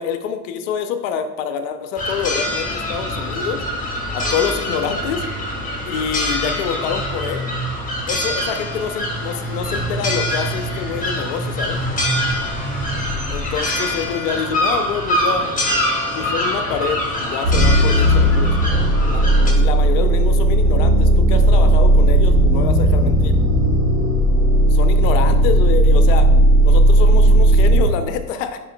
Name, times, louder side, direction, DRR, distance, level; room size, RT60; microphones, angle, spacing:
voice 1, 0.0-3.6 4.1-5.2 5.8-7.5 8.1-11.8 13.3-15.6 16.1-18.6 19.1-23.4 24.7-26.3 26.6-28.6, left 7 dB, 55° left, 9 dB, 0.6 m, -26 dB
sound 1, 2.0-19.5, equal, 15° left, 1.4 m, -24 dB
sound 2, 17.4-27.8, right 1 dB, 60° right, 1.8 m, -14 dB
9.8 x 4.5 x 2.2 m, 1.1 s
hypercardioid pair, 80°, 47 cm